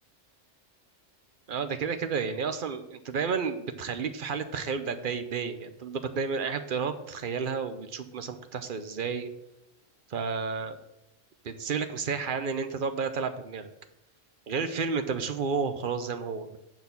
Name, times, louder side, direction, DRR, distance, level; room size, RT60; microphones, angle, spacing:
voice 1, 1.5-9.3 10.1-10.8 11.4-13.7 14.5-16.6, right 5 dB, 50° right, 9 dB, 0.8 m, -31 dB
8.8 x 4.1 x 7.0 m, 0.84 s
omnidirectional pair, 1.3 m